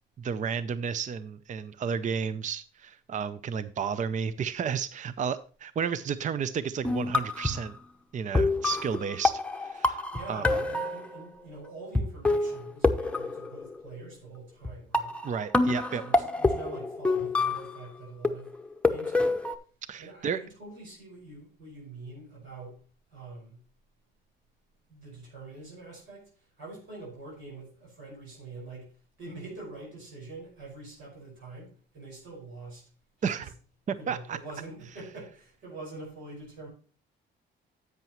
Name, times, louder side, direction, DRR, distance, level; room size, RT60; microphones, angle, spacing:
voice 1, 0.2-7.8 8.1-10.5 15.2-16.0 19.9-20.4 33.2-33.5 33.9-34.4, right 7 dB, 40° right, 0.5 m, -32 dB
sound 1, 6.8-7.7 8.3-11.2 11.9-12.0 12.2-13.9 14.6-14.7 14.9-17.8 18.2-19.5, left 2 dB, 5° left, 0.8 m, -27 dB
voice 2, 9.7-15.2 15.9-18.5 18.9-19.5 20.0-22.8 23.1-23.6 24.9-32.9 33.2-33.6 34.0-36.7, right 3 dB, 75° right, 5.3 m, -45 dB
10.5 x 8.0 x 3.0 m
cardioid pair, 90°, 20 cm